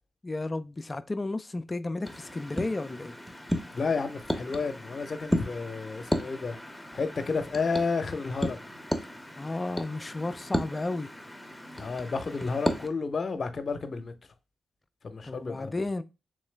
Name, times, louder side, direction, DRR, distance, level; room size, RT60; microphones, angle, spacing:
voice 1, 0.2-3.2 9.0-9.1 9.4-11.1 15.2-16.0, left 2 dB, 30° left, 0.3 m, -33 dB
sound 1, 2.0-12.9, equal, 5° left, 0.7 m, -34 dB
voice 2, 3.7-6.6 6.9-8.6 11.8-14.1 15.0-15.7, left 4 dB, 50° left, 0.7 m, -31 dB
3.8 x 3.1 x 3.2 m
supercardioid pair, 45°, 0 cm